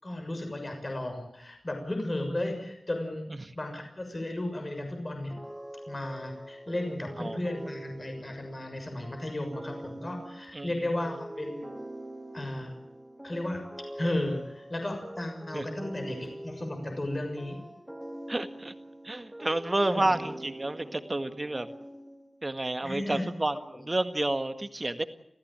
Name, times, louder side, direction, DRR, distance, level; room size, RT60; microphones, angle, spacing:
voice 1, 0.0-3.3 3.6-5.4 5.9-11.8 12.3-12.7 13.2-13.6 14.0-17.6 19.9-20.1 22.8-23.2, left 1 dB, 35° left, 4 dB, 6.5 m, -34 dB
sound 1, 5.3-22.5, right 1 dB, 10° right, 3.1 m, -44 dB
voice 2, 10.5-10.9 15.5-15.7 18.3-18.7 19.0-21.7 22.4-25.0, right 2 dB, 30° right, 10 dB, 1.8 m, -30 dB
30.0 x 15.5 x 8.9 m, 0.78 s
wide cardioid pair, 90°, 0 cm